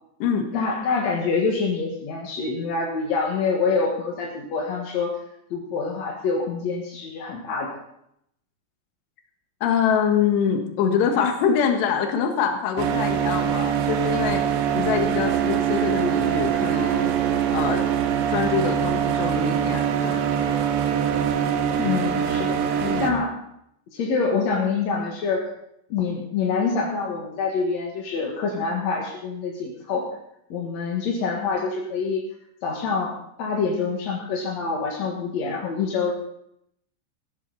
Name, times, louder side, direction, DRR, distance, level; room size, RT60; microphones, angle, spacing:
voice 1, 0.5-5.2 5.5-7.8 21.8-22.6 23.0-23.3 23.9-25.5 25.9-30.1 30.5-32.2 32.6-33.1 33.4-36.1, left 4 dB, 55° left, -1 dB, 2.2 m, -26 dB
voice 2, 9.6-14.4 14.7-17.8 18.3-20.2 22.8-23.1, left 7 dB, 75° left, 4 dB, 3.7 m, -24 dB
sound 1, 12.8-23.1, right 9 dB, 90° right, 3.5 m, -23 dB
15.5 x 13.5 x 4.1 m, 0.74 s
omnidirectional pair, 5.0 m